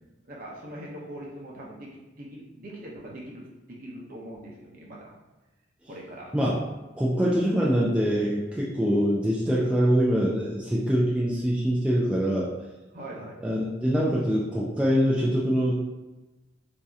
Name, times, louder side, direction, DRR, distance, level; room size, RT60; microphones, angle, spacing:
voice 1, 0.2-5.1 5.8-6.3 12.9-13.4, right 1 dB, 45° right, -3 dB, 0.8 m, -42 dB
voice 2, 7.0-12.5 13.4-15.8, equal, 5° right, -6 dB, 0.3 m, -24 dB
4.1 x 2.7 x 2.4 m, 1.1 s
head